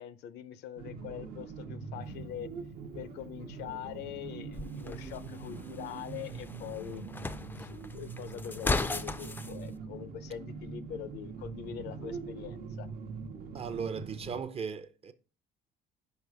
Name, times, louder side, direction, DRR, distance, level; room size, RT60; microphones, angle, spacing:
voice 1, 0.0-2.5 2.9-7.0 7.6-12.9, left 11 dB, 80° left, 0.6 m, -43 dB
sound 1, 0.8-14.4, right 5 dB, 65° right, 0.9 m, -43 dB
Engine starting, 2.0-8.5, right 2 dB, 90° right, 1.1 m, -60 dB
sound 2, 4.5-9.5, left 3 dB, 10° left, 0.4 m, -37 dB
voice 2, 13.5-15.1, right 6 dB, 35° right, 0.6 m, -37 dB
5.3 x 4.9 x 4.7 m
cardioid pair, 110°, 17 cm